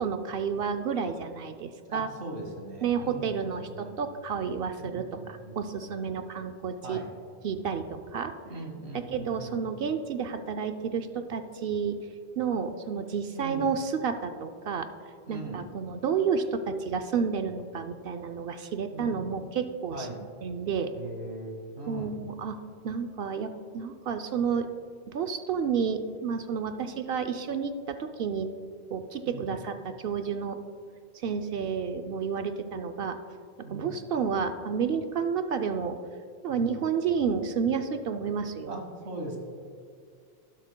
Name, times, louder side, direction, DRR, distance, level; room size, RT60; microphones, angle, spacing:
voice 1, 0.0-2.1 2.8-7.0 7.4-8.3 8.9-12.0 12.4-14.9 15.3-20.9 21.9-22.6 22.8-24.7 25.1-28.5 28.9-30.6 31.2-33.2 33.6-36.0 36.4-38.8, right 6 dB, 65° right, 8 dB, 0.8 m, -30 dB
voice 2, 1.9-4.1 4.8-5.9 6.8-7.1 8.4-9.7 13.3-13.7 15.3-15.7 18.9-19.2 19.9-20.2 21.0-22.2 29.3-29.6 33.6-34.0 36.5-36.8 38.7-39.4, right 2 dB, 90° right, 2 dB, 1.9 m, -40 dB
12.5 x 11.5 x 2.2 m, 2.2 s
omnidirectional pair, 1.1 m